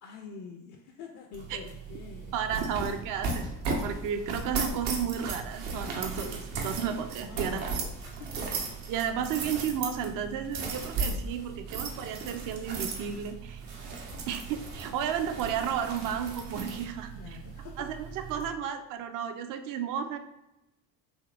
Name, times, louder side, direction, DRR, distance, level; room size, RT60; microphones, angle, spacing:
voice 1, 0.0-2.3 2.7-3.0 7.3-8.6 17.2-18.1, left 6 dB, 40° left, 3 dB, 0.4 m, -47 dB
sound 1, 1.3-18.5, right 4 dB, 70° right, 0.8 m, -36 dB
voice 2, 2.3-3.5 3.8-7.9 8.9-13.6 14.3-17.1 17.8-20.2, right 8 dB, 45° right, 8 dB, 0.4 m, -33 dB
3.5 x 2.8 x 2.3 m, 0.93 s
hypercardioid pair, 60°, 50 cm